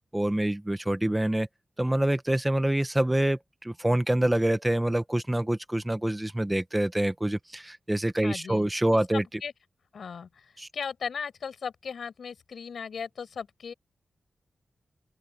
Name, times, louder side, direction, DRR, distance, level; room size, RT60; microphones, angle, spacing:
voice 1, 0.1-1.5 1.8-9.2 10.6-10.7, right 1 dB, 10° right, 1.1 m, -26 dB
voice 2, 8.2-8.7 9.1-9.5 9.9-13.7, left 6 dB, 70° left, 5.8 m, -37 dB
open air
wide cardioid pair, 140°, 0 cm